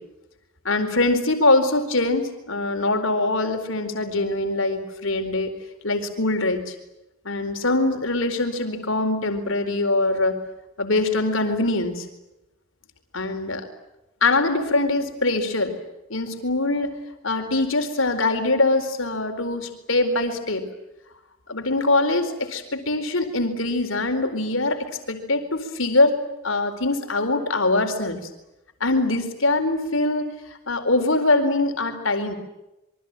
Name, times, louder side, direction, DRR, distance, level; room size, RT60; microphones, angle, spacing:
voice 1, 0.6-5.5 5.8-6.7 7.2-10.4 10.8-12.1 13.1-13.6 14.2-15.7 16.1-16.9 17.2-20.6 21.5-26.2 26.4-28.2 28.8-32.3, left 2 dB, 75° left, 6 dB, 4.3 m, -23 dB
27.5 x 23.5 x 9.0 m, 0.93 s
head